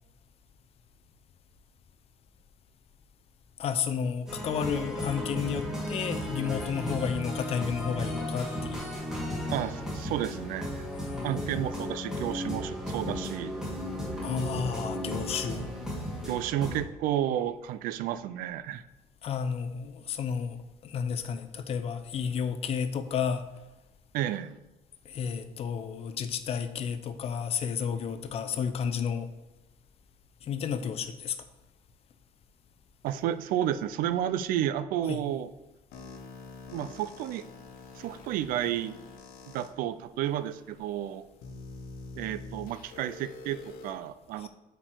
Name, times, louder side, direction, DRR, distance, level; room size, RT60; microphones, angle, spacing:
voice 1, 3.6-9.0 11.1-11.3 14.2-15.7 19.2-20.6 20.8-23.5 25.1-29.3 30.4-31.4 35.1-35.2 44.4-44.5, left 7 dB, 45° left, 10 dB, 0.6 m, -32 dB
sound 1, 4.3-16.8, equal, 5° right, 2.1 m, -35 dB
voice 2, 9.5-10.8 11.2-13.5 16.3-18.8 24.1-24.5 33.0-35.5 36.7-37.4 37.9-39.0 39.5-41.3 42.2-44.5, right 11 dB, 75° right, 14 dB, 0.4 m, -31 dB
sound 2, 35.9-39.7 40.4-40.5 41.4-43.9, left 3 dB, 80° left, 1.1 m, -45 dB
7.5 x 4.7 x 4.6 m, 1.1 s
cardioid pair, 145°, 15 cm